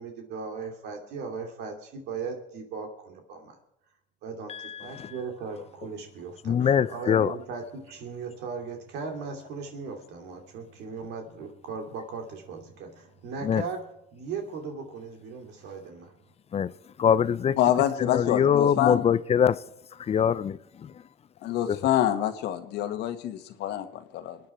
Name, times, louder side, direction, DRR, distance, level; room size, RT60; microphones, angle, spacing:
voice 1, 0.0-3.6 4.2-16.2, right 5 dB, 85° right, 2.7 m, -38 dB
voice 2, 4.5-5.1 6.4-7.3 13.4-13.6 16.5-16.7 17.0-17.6 18.0-19.6 20.1-20.9 21.7-21.8, left 8 dB, 40° left, 0.7 m, -23 dB
voice 3, 17.6-19.1 21.4-24.4, left 11 dB, 85° left, 1.6 m, -26 dB
25.5 x 9.7 x 4.4 m
cardioid pair, 110°, 17 cm